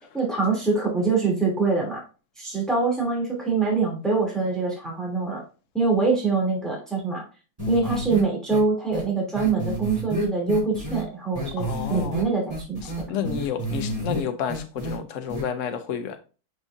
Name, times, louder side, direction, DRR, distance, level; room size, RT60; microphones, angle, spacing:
voice 1, 0.1-2.0 2.4-5.4 5.7-7.2 7.7-13.0, right 4 dB, ahead, -2 dB, 2.7 m, -24 dB
sound 1, 7.6-8.2 8.5-8.6 8.9-9.0 9.4-11.0 11.3-12.2 12.5-14.2 14.5-15.0 15.3-15.4, equal, 15° right, 3.7 m, -29 dB
voice 2, 11.6-12.2 12.8-16.2, left 7 dB, 75° left, 7 dB, 0.7 m, -30 dB
7.2 x 5.3 x 2.6 m, 0.34 s
omnidirectional pair, 2.2 m